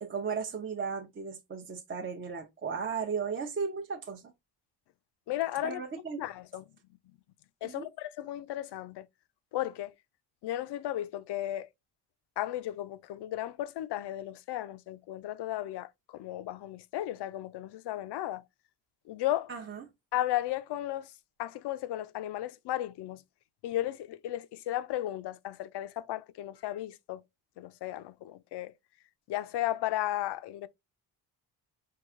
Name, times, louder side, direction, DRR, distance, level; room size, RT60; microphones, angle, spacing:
voice 1, 0.0-4.2 5.6-6.2 7.6-7.9 19.5-19.8, right 5 dB, 30° right, 0.6 m, -35 dB
voice 2, 5.3-5.8 6.2-6.6 7.6-9.1 9.5-9.9 10.4-11.7 12.4-18.4 19.1-19.5 20.1-21.1 21.4-23.2 23.6-27.2 27.6-28.7 29.3-30.7, left 14 dB, 65° left, 0.6 m, -34 dB
4.7 x 2.3 x 3.6 m
cardioid pair, 90°, 43 cm